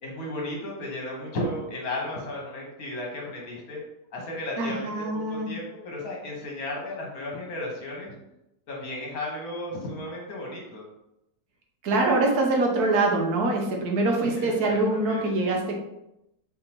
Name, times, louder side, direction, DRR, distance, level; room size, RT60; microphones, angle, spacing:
voice 1, 0.0-3.8 4.1-8.1 8.7-10.8 14.2-15.5, left 1 dB, 70° left, -2 dB, 1.6 m, -34 dB
voice 2, 4.6-5.5 11.8-15.8, right 2 dB, 75° right, 1 dB, 1.4 m, -24 dB
4.1 x 3.8 x 2.9 m, 0.86 s
omnidirectional pair, 1.7 m